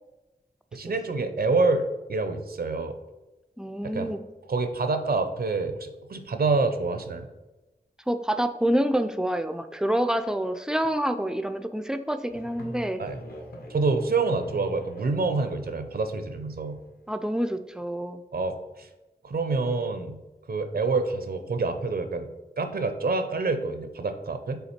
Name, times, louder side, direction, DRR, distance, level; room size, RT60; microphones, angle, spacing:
voice 1, 0.7-3.0 3.8-4.1 4.5-7.3 13.0-13.2 13.7-16.8 18.3-18.9 19.2-20.2 20.5-22.3 22.6-24.6, right 3 dB, 65° right, 8 dB, 0.6 m, -27 dB
voice 2, 3.6-4.2 8.1-13.0 17.1-18.2, right 1 dB, 5° right, 8 dB, 0.4 m, -27 dB
Musical instrument, 12.3-17.1, equal, 65° left, 1.5 m, -42 dB
5.7 x 3.8 x 4.3 m, 1.1 s
wide cardioid pair, 75°, 17 cm